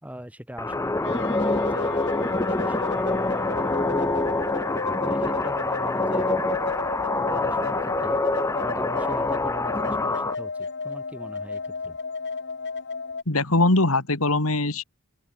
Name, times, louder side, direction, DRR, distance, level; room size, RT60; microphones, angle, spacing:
voice 1, 0.0-4.5 5.1-6.3 7.2-8.2 8.6-12.0, equal, 5° right, 5.8 m, -41 dB
sound 1, 0.6-10.3, left 2 dB, 15° left, 0.6 m, -26 dB
sound 2, 1.0-13.2, left 4 dB, 50° left, 1.6 m, -33 dB
voice 2, 13.3-14.8, left 2 dB, 70° left, 2.5 m, -21 dB
open air
head